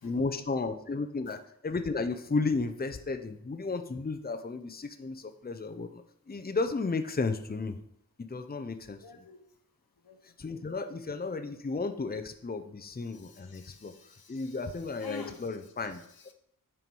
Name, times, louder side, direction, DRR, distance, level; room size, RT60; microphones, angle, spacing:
voice 1, 0.0-7.8 8.2-9.2 10.4-13.9 14.3-16.0, left 3 dB, 25° left, 8 dB, 0.6 m, -33 dB
voice 2, 8.9-9.4 10.0-10.2 13.1-14.6 15.0-15.5 15.8-16.3, left 4 dB, 85° left, 6 dB, 1.1 m, -49 dB
9.3 x 4.6 x 5.4 m, 0.70 s
wide cardioid pair, 70°, 35 cm